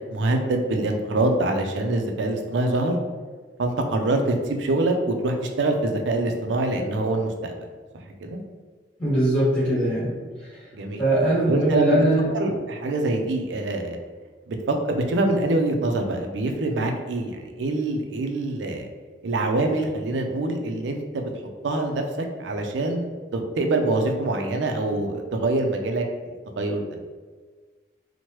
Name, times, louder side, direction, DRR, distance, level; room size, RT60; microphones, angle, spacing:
voice 1, 0.1-3.0 3.6-7.7 8.2-8.4 10.7-11.0 11.5-12.0 12.3-14.0 14.5-18.9 19.2-21.3 21.6-26.0 26.6-27.0, right 2 dB, 90° right, 4 dB, 0.4 m, -25 dB
voice 2, 9.0-10.6 11.0-12.3, right 1 dB, 10° left, -11 dB, 1.3 m, -22 dB
3.0 x 2.1 x 2.9 m, 1.5 s
head